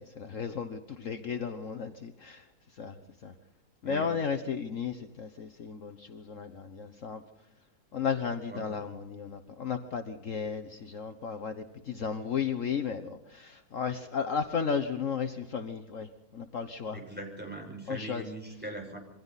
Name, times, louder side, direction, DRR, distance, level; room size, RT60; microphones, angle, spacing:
voice 1, 0.0-3.3 3.8-7.2 7.9-17.0 17.9-18.2, left 6 dB, 55° left, 7 dB, 1.4 m, -34 dB
voice 2, 16.9-19.0, right 2 dB, 5° right, 0 dB, 6.1 m, -41 dB
28.0 x 23.5 x 4.1 m, 0.85 s
omnidirectional pair, 1.6 m